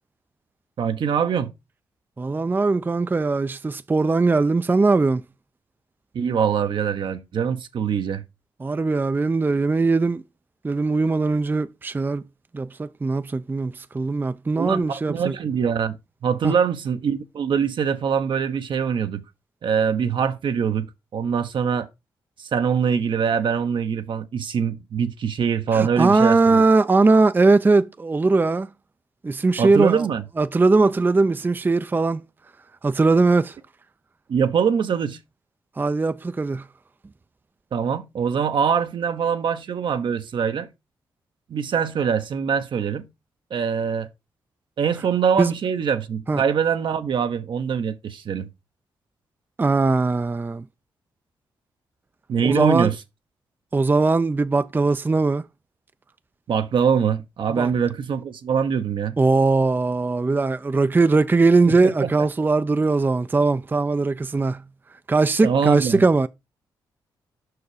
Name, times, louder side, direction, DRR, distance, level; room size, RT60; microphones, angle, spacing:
voice 1, 0.8-1.5 6.1-8.2 14.6-16.0 16.2-19.2 19.6-20.9 21.1-21.9 22.4-26.6 29.6-30.2 34.3-35.2 37.7-40.7 41.5-43.1 43.5-44.1 44.8-48.5 52.3-52.9 56.5-59.2 61.7-61.8 65.4-66.0, right 7 dB, 65° right, 0.9 m, -23 dB
voice 2, 2.2-5.2 8.6-10.2 10.6-12.2 12.5-15.3 16.4-16.5 25.7-28.7 29.2-30.1 30.4-32.2 32.8-33.6 35.8-36.7 45.4-45.6 46.3-46.4 49.6-50.6 52.4-52.9 53.7-55.4 57.6-57.7 59.2-64.6 65.1-66.3, right 3 dB, 20° right, 0.4 m, -20 dB
5.9 x 4.7 x 4.8 m
supercardioid pair, 55°, 9 cm